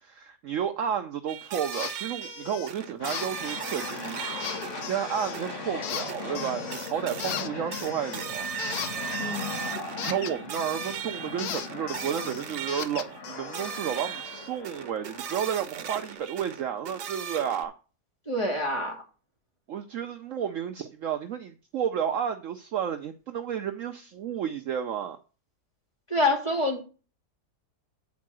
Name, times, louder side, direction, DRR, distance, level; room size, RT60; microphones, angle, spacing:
voice 1, 0.0-4.2 4.8-8.5 10.0-17.7 19.7-25.2, right 8 dB, 65° right, 0.9 m, -32 dB
sound 1, 1.3-4.9 5.3-5.7 6.1-6.4 6.7-7.4 7.7-13.2 13.5-17.7, right 8 dB, 90° right, 1.5 m, -38 dB
sound 2, 1.7-1.9 2.2-2.7 3.1-4.0 4.4-5.4 5.8-6.9 7.2-11.0 11.4-13.8, left 9 dB, 75° left, 1.3 m, -37 dB
sound 3, 3.0-16.1, left 3 dB, 50° left, 2.0 m, -39 dB
voice 2, 9.2-9.5 18.3-19.0 26.1-26.8, left 2 dB, 20° left, 2.2 m, -26 dB
8.5 x 4.5 x 6.2 m
omnidirectional pair, 1.7 m